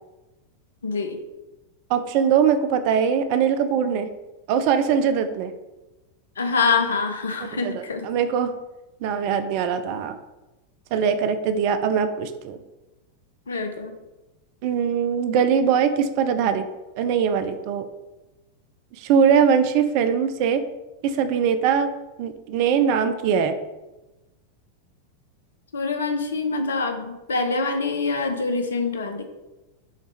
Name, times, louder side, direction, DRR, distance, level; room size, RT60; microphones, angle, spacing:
voice 1, 0.8-1.2 6.4-8.1 13.5-13.9 25.7-29.2, left 4 dB, 70° left, 6 dB, 0.5 m, -25 dB
voice 2, 1.9-4.1 4.5-5.5 7.6-8.5 9.0-10.2 10.9-12.6 14.6-16.7 17.0-17.9 19.0-20.6 21.0-21.9 22.2-23.6, right 7 dB, 45° right, 9 dB, 0.4 m, -21 dB
4.9 x 3.1 x 3.2 m, 1.0 s
figure-of-eight pair, 90°, 0 cm